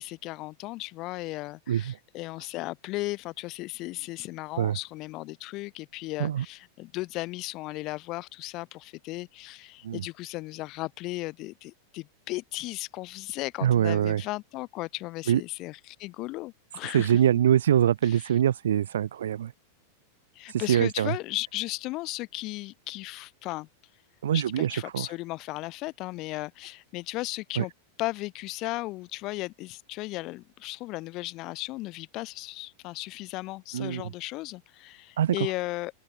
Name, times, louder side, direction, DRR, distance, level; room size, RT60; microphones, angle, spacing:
voice 1, 0.0-17.2 18.0-18.3 20.4-23.7 24.3-27.7 28.0-35.9, left 20 dB, 40° left, 7.4 m, -36 dB
voice 2, 13.6-14.2 15.3-15.4 16.9-19.5 20.5-21.1 24.2-25.1 27.6-27.7 33.7-34.1 35.2-35.3, right 10 dB, 65° right, 0.6 m, -24 dB
open air
figure-of-eight pair, 90°, 0 cm